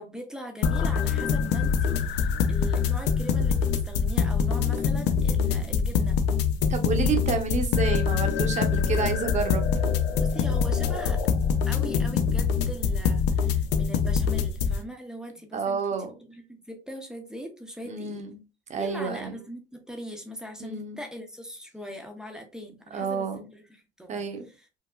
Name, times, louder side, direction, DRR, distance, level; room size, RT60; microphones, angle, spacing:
voice 1, 0.0-6.2 10.2-11.2 11.7-18.2 18.8-24.2 24.5-24.7, equal, 5° right, 0.7 m, -41 dB
sound 1, 0.6-14.8, left 6 dB, 90° left, 0.5 m, -24 dB
voice 2, 5.2-5.6 6.7-9.9 15.5-16.1 17.8-18.4 18.7-19.3 20.6-21.0 22.9-23.4 24.1-24.4, right 5 dB, 45° right, 0.8 m, -30 dB
4.7 x 2.0 x 2.3 m
cardioid pair, 110°, 17 cm